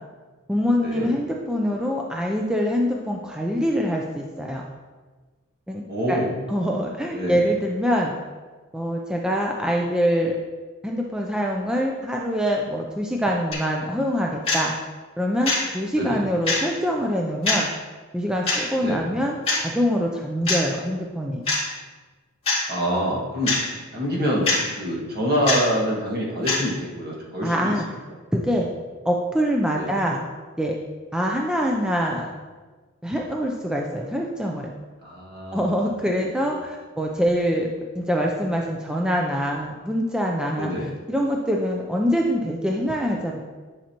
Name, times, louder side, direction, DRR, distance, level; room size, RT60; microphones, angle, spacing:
voice 1, 0.5-4.6 5.7-5.8 6.1-6.2 6.5-8.1 8.7-10.4 10.8-14.7 15.2-17.7 18.1-21.4 27.4-27.9 28.3-28.7 29.0-30.2 30.6-30.8 31.1-32.3 33.0-34.7 35.5-37.7 38.0-40.7 41.1-43.4, equal, 5° right, -1 dB, 0.4 m, -24 dB
voice 2, 5.9-6.4 7.1-7.4 15.9-16.3 18.8-19.1 22.7-23.6 23.9-27.7 29.7-29.9 35.0-35.6 36.2-36.3 40.5-40.9, equal, 50° right, -3 dB, 1.7 m, -26 dB
sound 1, 13.5-13.6 14.5-14.6 15.5-15.6 16.5-16.6 17.5-17.6 18.5-18.6 19.5-19.6 20.5-20.6 21.5-21.6 22.5-22.6 23.4-23.6 24.4-24.6 25.4-25.6 26.4-26.6, left 3 dB, 30° left, 2.2 m, -22 dB
10.0 x 5.6 x 2.9 m, 1.3 s
head